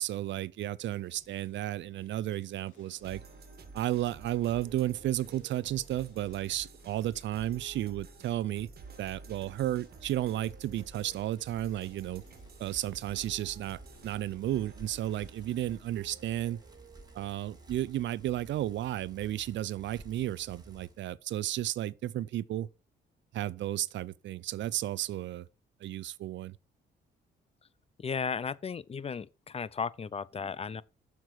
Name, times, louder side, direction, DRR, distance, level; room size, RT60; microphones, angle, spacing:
voice 1, 0.0-3.2 3.7-8.7 9.0-12.2 12.6-16.6 17.1-22.7 23.3-25.5 25.8-26.6, right 13 dB, 70° right, 0.5 m, -33 dB
sound 1, 0.9-15.6, left 5 dB, 85° left, 3.7 m, -63 dB
sound 2, 3.0-17.9, right 4 dB, 50° right, 1.6 m, -52 dB
Bicycle, 9.3-21.0, right 2 dB, 20° right, 2.1 m, -54 dB
voice 2, 28.0-30.8, left 6 dB, 30° left, 0.5 m, -35 dB
7.1 x 6.1 x 6.2 m
cardioid pair, 90°, 20 cm